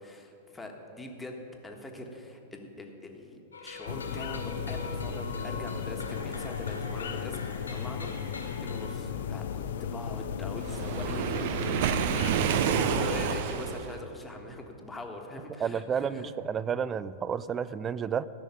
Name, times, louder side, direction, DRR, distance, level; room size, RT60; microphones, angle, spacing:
voice 1, 0.0-16.3, left 1 dB, 10° left, 2 dB, 1.6 m, -43 dB
sound 1, 3.5-9.0, left 3 dB, 85° left, 2.1 m, -43 dB
sound 2, 3.9-13.4, left 7 dB, 65° left, 0.6 m, -35 dB
Waves surf, 10.6-13.9, right 8 dB, 55° right, 0.7 m, -28 dB
voice 2, 15.6-18.3, right 7 dB, 25° right, 17 dB, 0.4 m, -31 dB
14.0 x 6.4 x 9.2 m, 2.9 s
figure-of-eight pair, 100°, 0 cm